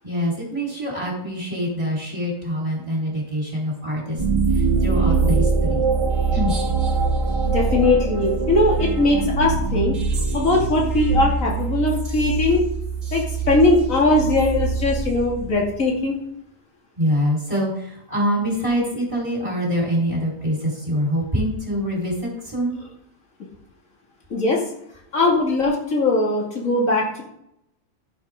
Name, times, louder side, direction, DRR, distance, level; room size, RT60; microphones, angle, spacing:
voice 1, 0.0-4.2 4.5-5.8 6.3-6.5 17.0-22.7, equal, 25° right, -4 dB, 4.5 m, -25 dB
sound 1, 4.2-15.7, right 4 dB, 70° right, 2.5 m, -23 dB
voice 2, 7.4-10.0 10.3-12.6 13.1-16.2 24.3-24.6 25.1-27.2, left 2 dB, 75° left, -1 dB, 2.9 m, -20 dB
15.5 x 7.2 x 3.8 m, 0.76 s
omnidirectional pair, 1.4 m